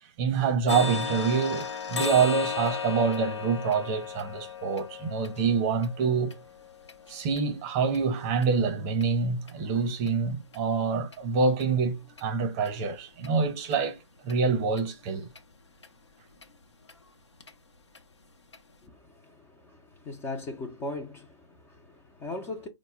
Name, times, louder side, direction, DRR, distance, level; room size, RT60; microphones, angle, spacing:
voice 1, 0.2-6.3 7.1-14.0 14.2-15.3, right 5 dB, 30° right, 0.7 m, -26 dB
sound 1, 0.7-8.5 8.9-9.1 9.5-9.6 10.1-10.2 10.5-10.6 11.1-11.2 11.6-11.7 12.2-12.3 12.6-12.7 13.2-13.3 13.7-13.8 14.3-14.4 14.8-14.9 15.3-15.4 15.8-15.9 16.4-16.5 16.9-17.0 17.4-17.5 17.9-18.0 18.5-18.6, left 6 dB, 80° left, 0.7 m, -36 dB
voice 2, 18.8-22.7, left 2 dB, 15° left, 0.4 m, -39 dB
4.1 x 2.0 x 3.4 m
figure-of-eight pair, 130°, 15 cm